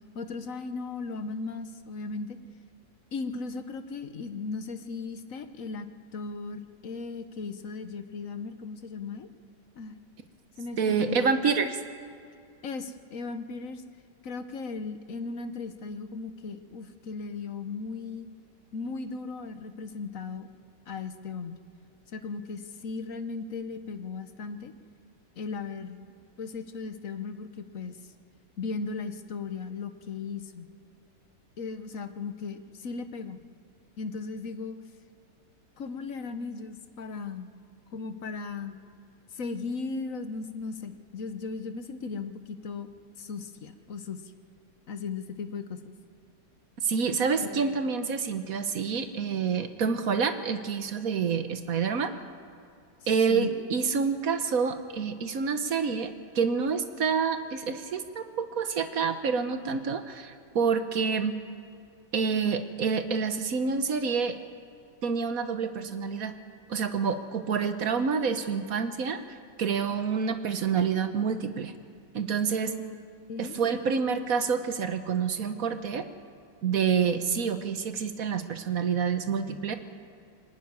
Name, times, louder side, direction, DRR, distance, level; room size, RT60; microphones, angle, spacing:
voice 1, 0.1-2.4 3.1-5.9 6.1-9.3 9.8-10.0 10.6-11.3 12.6-13.8 14.2-18.3 18.7-20.5 20.9-21.6 22.1-24.7 25.4-26.1 26.4-28.0 28.6-30.7 31.6-33.4 34.0-34.8 35.8-37.5 37.9-38.7 39.3-42.9 43.2-44.2 44.9-45.9 47.4-47.6 53.0-53.7 72.7-73.0 73.3-73.6, left 4 dB, 55° left, 9 dB, 1.3 m, -37 dB
voice 2, 10.8-11.8 46.8-52.1 53.1-61.3 62.1-64.4 65.0-66.3 66.7-69.2 69.6-71.7 72.1-72.7 73.4-76.0 76.6-79.8, right 6 dB, 55° right, 9 dB, 1.4 m, -28 dB
24.5 x 11.5 x 9.6 m, 2.4 s
omnidirectional pair, 1.9 m